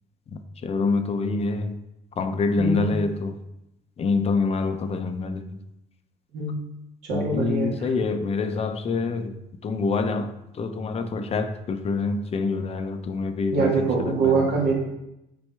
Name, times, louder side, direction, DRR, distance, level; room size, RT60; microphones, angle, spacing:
voice 1, 0.3-1.8 2.2-3.4 4.0-5.6 7.1-9.3 9.6-14.7, left 4 dB, 35° left, 8 dB, 0.6 m, -26 dB
voice 2, 6.3-6.6 7.0-7.9 13.5-14.7, right 4 dB, 80° right, -2 dB, 1.9 m, -24 dB
7.3 x 4.4 x 3.4 m, 0.87 s
cardioid pair, 110°, 17 cm